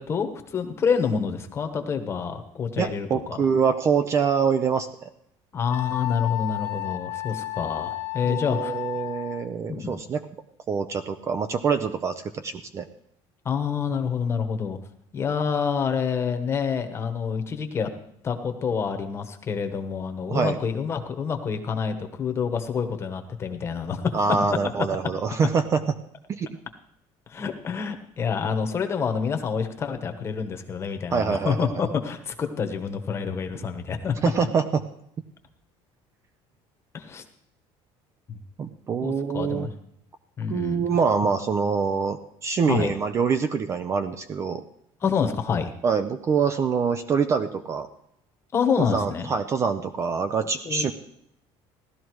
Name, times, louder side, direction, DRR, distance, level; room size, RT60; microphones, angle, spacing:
voice 1, 0.0-3.4 5.5-8.7 9.7-10.0 13.4-14.8 15.1-17.9 18.2-24.2 27.3-34.2 36.9-37.2 38.3-38.4 39.0-39.7 40.4-40.8 42.7-42.9 45.0-45.7 48.5-49.3 50.6-50.9, left 6 dB, 20° left, 6 dB, 1.2 m, -27 dB
voice 2, 2.8-5.1 8.3-10.2 10.7-12.9 20.3-20.6 24.1-25.8 26.3-26.6 31.1-31.9 33.6-33.7 34.2-34.8 38.6-39.7 40.5-44.6 45.8-47.9 48.8-50.9, right 6 dB, 25° right, 10 dB, 0.5 m, -25 dB
Wind instrument woodwind instrument, 5.7-9.5, left 18 dB, 50° left, 1.3 m, -32 dB
16.5 x 12.5 x 4.7 m, 0.74 s
cardioid pair, 180°, 12 cm